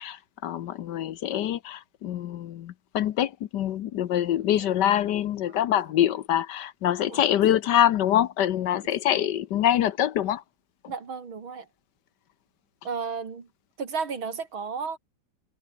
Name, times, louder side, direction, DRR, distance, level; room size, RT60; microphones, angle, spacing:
voice 1, 0.0-10.4, left 11 dB, 65° left, 1.3 m, -25 dB
voice 2, 10.9-11.7 12.8-13.5 13.8-15.0, right 5 dB, 90° right, 3.7 m, -33 dB
omnidirectional pair, 2.2 m